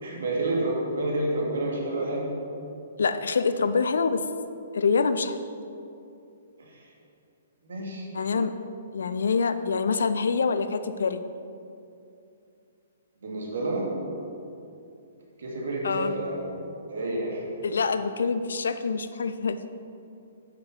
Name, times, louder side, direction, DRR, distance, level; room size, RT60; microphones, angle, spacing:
voice 1, 0.0-2.3 6.6-6.9 7.6-8.1 13.2-13.9 15.4-16.6 16.9-17.4, right 2 dB, 60° right, -2 dB, 2.4 m, -29 dB
voice 2, 3.0-4.2 4.7-5.4 8.1-8.6 8.9-11.2 15.8-16.1 17.6-19.6, left 5 dB, 60° left, 11 dB, 0.5 m, -25 dB
9.4 x 7.6 x 5.7 m, 2.6 s
figure-of-eight pair, 120°, 0 cm